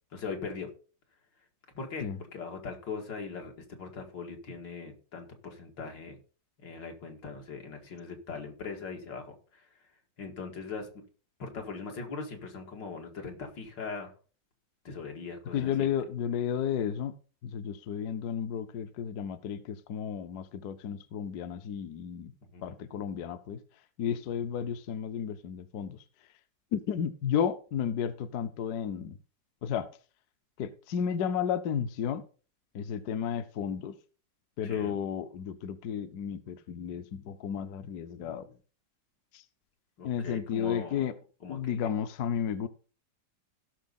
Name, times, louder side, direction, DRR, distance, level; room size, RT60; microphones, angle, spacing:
voice 1, 0.1-0.7 1.7-6.2 6.6-9.7 10.2-10.9 11.4-14.1 14.8-15.9 22.5-22.8 34.6-34.9 40.0-41.0 41.4-41.9, left 4 dB, 85° left, 2.7 m, -40 dB
voice 2, 15.5-17.2 17.4-22.3 22.6-23.6 24.0-26.0 26.7-29.2 29.6-29.9 30.6-32.2 32.7-33.9 34.6-38.5 39.3-39.4 40.0-41.1 41.5-42.7, left 8 dB, 65° left, 1.2 m, -33 dB
16.5 x 6.3 x 4.1 m
omnidirectional pair, 1.9 m